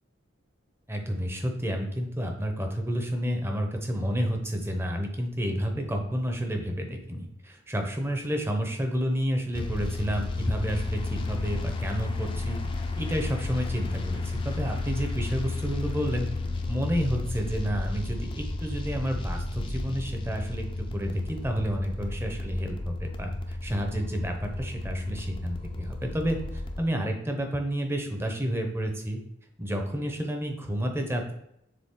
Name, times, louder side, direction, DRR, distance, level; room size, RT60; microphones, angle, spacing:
voice 1, 0.9-12.6 13.0-16.3 16.7-29.2 29.6-31.3, equal, 10° right, 3 dB, 0.8 m, -30 dB
sound 1, 9.5-26.8, left 2 dB, 25° left, 0.6 m, -32 dB
6.8 x 3.8 x 3.7 m, 0.78 s
head